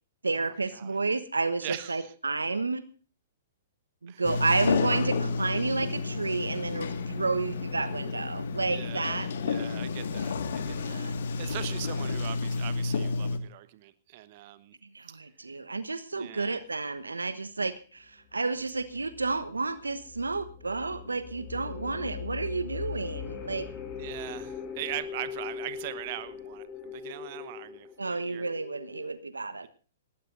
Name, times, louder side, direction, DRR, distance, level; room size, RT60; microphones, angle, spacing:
voice 1, 0.2-2.8 4.0-9.3 10.6-11.2 14.8-23.7 28.0-29.7, right 3 dB, 85° right, 14 dB, 1.1 m, -31 dB
voice 2, 1.6-2.1 4.1-4.2 6.7-6.8 8.6-11.1 11.4-14.8 16.1-16.6 24.0-28.5, right 15 dB, 45° right, 14 dB, 1.1 m, -41 dB
Sliding door, 4.2-13.4, left 4 dB, 65° left, 1.8 m, -31 dB
sound 1, 18.8-29.1, left 7 dB, 25° left, 3.8 m, -41 dB
19.0 x 18.0 x 2.6 m, 0.37 s
figure-of-eight pair, 115°, 0 cm